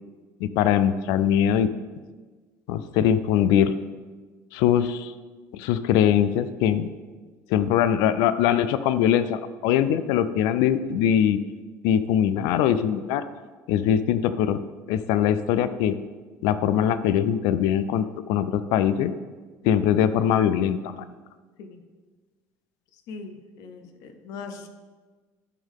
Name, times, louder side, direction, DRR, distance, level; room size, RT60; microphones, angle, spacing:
voice 1, 0.4-1.7 2.7-3.7 4.5-5.1 5.5-6.9 7.5-11.4 11.8-13.2 13.7-14.6 14.9-15.9 16.4-19.1 19.6-21.0, left 9 dB, 80° left, 13 dB, 0.4 m, -22 dB
voice 2, 23.1-24.7, left 4 dB, 65° left, 7 dB, 0.8 m, -40 dB
12.0 x 5.5 x 3.7 m, 1.4 s
cardioid pair, 150°, 7 cm